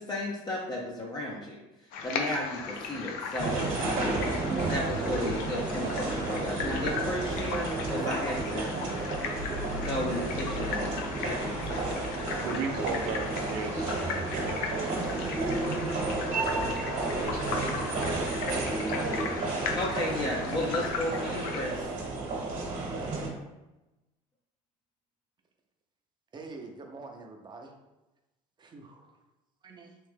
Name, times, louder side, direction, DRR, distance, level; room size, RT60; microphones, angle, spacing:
voice 1, 0.0-1.6 2.0-4.2 4.7-8.7 9.8-10.9 11.2-12.0 19.7-21.9, left 1 dB, 25° left, -3 dB, 0.6 m, -34 dB
sound 1, 1.9-21.6, left 5 dB, 85° left, 0.6 m, -37 dB
sound 2, 3.4-23.3, right 2 dB, 55° right, 1.2 m, -32 dB
voice 2, 12.4-15.6 16.1-16.6 17.2-19.1, right 5 dB, 75° right, 5 dB, 0.6 m, -38 dB
voice 3, 26.3-27.8 28.6-29.2 29.6-29.9, right 3 dB, 30° right, 2 dB, 0.7 m, -45 dB
3.3 x 3.0 x 3.3 m, 1.0 s
cardioid pair, 105°, 15 cm